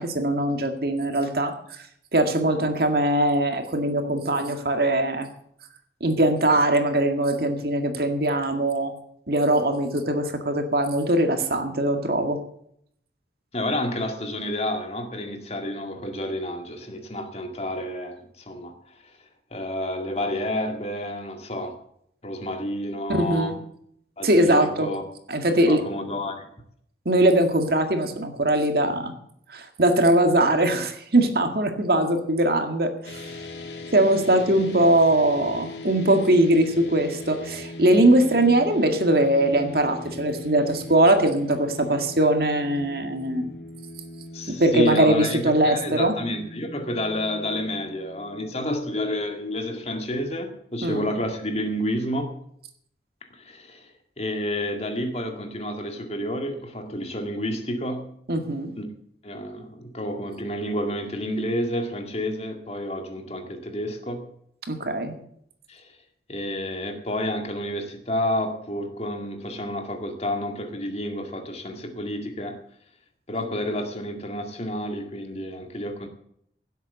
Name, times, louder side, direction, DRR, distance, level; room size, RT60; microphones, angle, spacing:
voice 1, 0.0-1.5 2.1-5.3 6.0-8.9 9.3-12.4 23.1-23.5 24.2-24.9 25.3-25.8 27.1-29.1 29.5-33.2 33.9-43.5 44.6-46.1 50.8-51.1 58.3-58.7 64.7-65.1, right 1 dB, 60° right, 5 dB, 2.0 m, -21 dB
voice 2, 13.5-19.0 19.5-21.8 22.2-23.6 24.2-25.0 25.7-26.4 44.3-52.4 53.3-53.9 54.2-58.1 58.8-58.9 59.2-64.2 65.7-65.9 66.3-72.6 73.3-76.1, left 1 dB, 35° left, 4 dB, 2.1 m, -30 dB
sound 1, 33.0-49.4, left 2 dB, 80° left, 2.4 m, -40 dB
17.0 x 8.1 x 6.9 m, 0.68 s
head